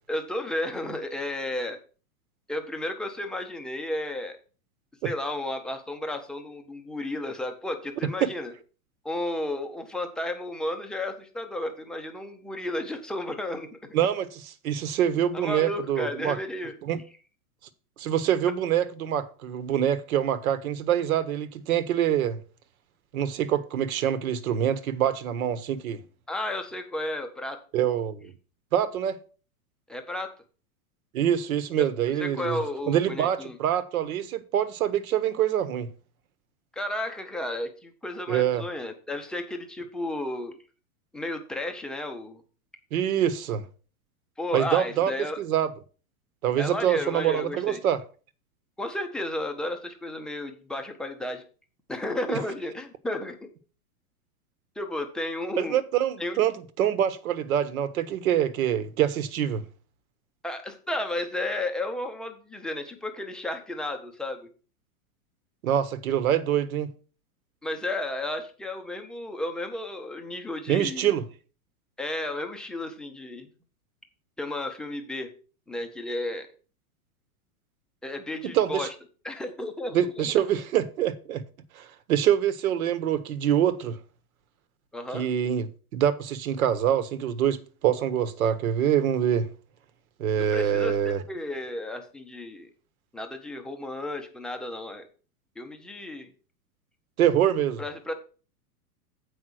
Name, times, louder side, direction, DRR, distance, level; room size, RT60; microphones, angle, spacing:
voice 1, 0.1-1.8 2.5-4.4 5.0-8.5 9.0-13.8 15.3-16.7 26.3-27.6 29.9-30.3 31.8-31.9 32.2-33.6 36.7-40.5 41.1-42.4 44.4-45.4 46.6-47.8 48.8-51.4 51.9-53.5 54.8-55.8 56.2-56.4 60.4-64.5 67.6-71.1 72.0-73.5 74.4-75.3 75.7-76.5 78.0-78.9 79.2-80.3 84.9-85.3 90.4-92.7 93.1-95.0 95.6-96.3 97.8-98.1, left 1 dB, ahead, 0.6 m, -33 dB
voice 2, 13.9-16.4 16.9-17.0 18.0-22.4 23.1-26.0 27.7-28.3 28.7-29.2 31.1-32.6 32.9-35.9 38.3-38.6 42.9-43.6 44.5-45.1 45.4-45.7 46.4-48.0 52.3-52.4 55.6-56.5 56.8-59.6 65.6-66.9 70.7-71.2 78.5-78.9 79.9-81.4 81.8-84.0 85.1-85.7 85.9-89.5 90.2-91.2 97.2-97.8, right 10 dB, 70° right, 1.2 m, -25 dB
7.8 x 5.4 x 6.2 m
supercardioid pair, 145°, 45 cm